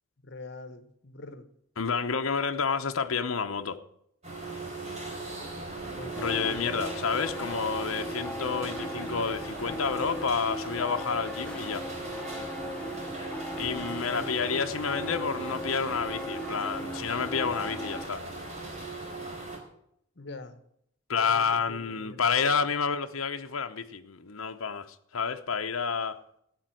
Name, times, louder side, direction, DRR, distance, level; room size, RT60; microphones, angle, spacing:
voice 1, 0.2-1.5 6.0-6.8 12.8-13.1 14.1-14.3 20.1-20.6 21.1-22.7, left 2 dB, 55° left, 1.3 m, -45 dB
voice 2, 1.8-3.8 6.2-11.9 13.6-18.2 21.1-26.2, left 5 dB, 80° left, 0.9 m, -29 dB
sound 1, 4.2-19.6, right 3 dB, 35° right, 4.4 m, -38 dB
sound 2, 6.1-18.0, left 1 dB, 5° left, 0.7 m, -39 dB
13.5 x 9.3 x 7.7 m
head